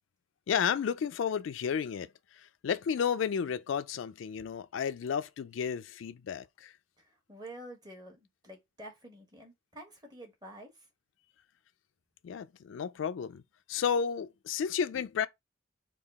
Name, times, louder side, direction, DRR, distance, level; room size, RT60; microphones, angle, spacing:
voice 1, 0.5-6.7 12.2-13.4 13.7-15.3, left 7 dB, 80° left, 0.4 m, -32 dB
voice 2, 7.0-10.7, right 1 dB, 20° right, 1.3 m, -49 dB
3.7 x 2.4 x 3.5 m
head